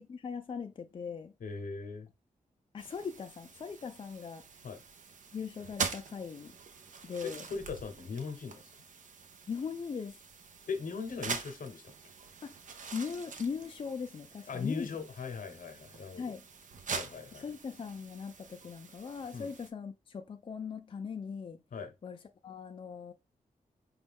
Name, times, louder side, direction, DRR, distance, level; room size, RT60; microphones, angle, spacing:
voice 1, 0.0-1.3 2.7-4.5 5.3-6.5 7.0-7.5 9.5-10.2 12.4-12.6 12.9-14.9 16.2-16.5 17.3-21.6 22.0-22.2 22.4-23.1, left 6 dB, 40° left, 0.4 m, -39 dB
voice 2, 1.4-2.1 4.6-4.8 7.2-8.6 10.6-11.9 14.5-16.2 16.9-17.4 19.3-19.5 21.7-21.9, left 5 dB, 75° left, 0.8 m, -39 dB
sound 1, 2.8-19.7, right 5 dB, 65° right, 0.6 m, -44 dB
5.1 x 2.3 x 3.4 m
wide cardioid pair, 175°, 14 cm